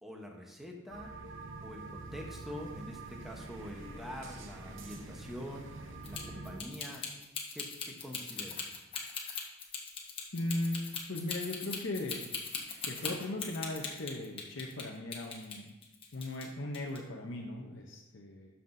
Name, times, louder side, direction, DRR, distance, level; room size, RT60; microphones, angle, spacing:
voice 1, 0.0-1.1 1.6-7.0 7.5-8.7, equal, ahead, 0 dB, 0.9 m, -45 dB
sound 1, 0.9-6.6, right 3 dB, 70° right, 0.8 m, -46 dB
sound 2, 6.0-14.8 15.1-16.5 16.7-17.0, left 6 dB, 25° left, 1.1 m, -39 dB
voice 2, 10.3-12.3 12.8-15.7 16.1-18.5, left 1 dB, 65° left, 0 dB, 0.7 m, -38 dB
13.0 x 5.7 x 2.6 m, 1.1 s
head